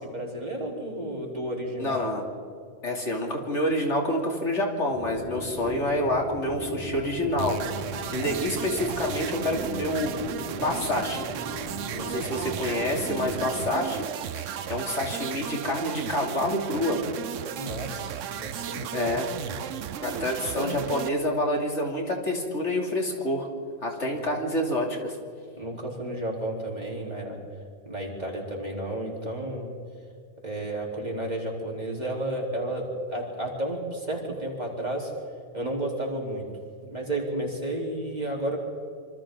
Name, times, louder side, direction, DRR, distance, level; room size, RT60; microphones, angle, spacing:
voice 1, 0.0-2.0 8.2-8.5 11.9-12.2 17.5-19.1 19.4-19.6 20.4-20.7 25.6-27.4 27.9-29.7 30.4-35.1 35.5-36.5 36.8-38.6, right 1 dB, 35° right, -1 dB, 4.0 m, -32 dB
voice 2, 1.8-2.2 2.8-10.2 10.5-11.3 12.0-14.1 14.4-17.0 18.9-19.3 20.0-23.5 23.8-25.2, left 1 dB, 70° left, 0 dB, 3.3 m, -28 dB
sound 1, 4.9-13.7, equal, 25° left, 4.8 m, -38 dB
sound 2, 7.4-21.1, right 9 dB, 85° right, 1.1 m, -35 dB
27.0 x 25.5 x 3.9 m, 2.3 s
omnidirectional pair, 1.2 m